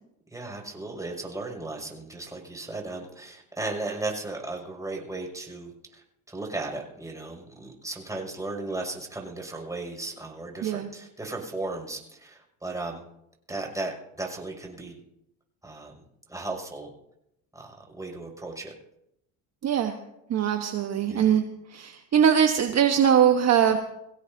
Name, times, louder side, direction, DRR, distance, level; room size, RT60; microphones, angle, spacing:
voice 1, 0.3-13.0 13.5-15.0 15.6-15.9 16.3-16.9 17.5-18.7 21.1-21.4, right 2 dB, 10° right, 0 dB, 6.3 m, -36 dB
voice 2, 19.6-19.9 20.3-21.4 21.7-23.8, right 8 dB, 40° right, 5 dB, 1.3 m, -21 dB
24.5 x 16.5 x 2.8 m, 0.83 s
supercardioid pair, 85°, 40 cm